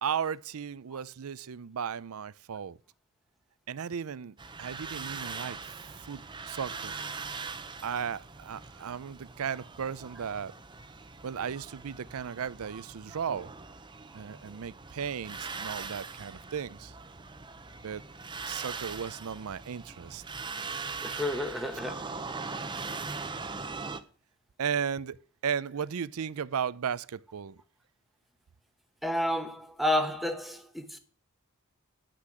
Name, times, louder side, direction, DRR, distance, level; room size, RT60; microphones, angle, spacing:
voice 1, 0.0-2.8 3.7-7.0 7.8-10.5 11.2-13.5 14.1-16.9 17.8-18.0 18.4-20.2 24.6-25.2 25.4-27.6, right 7 dB, 70° right, 0.5 m, -35 dB
sound 1, 4.4-24.0, right 4 dB, 20° right, 0.7 m, -41 dB
voice 2, 21.0-22.1 22.6-22.7 29.0-31.0, left 1 dB, ahead, 1.0 m, -31 dB
10.0 x 6.1 x 7.6 m
head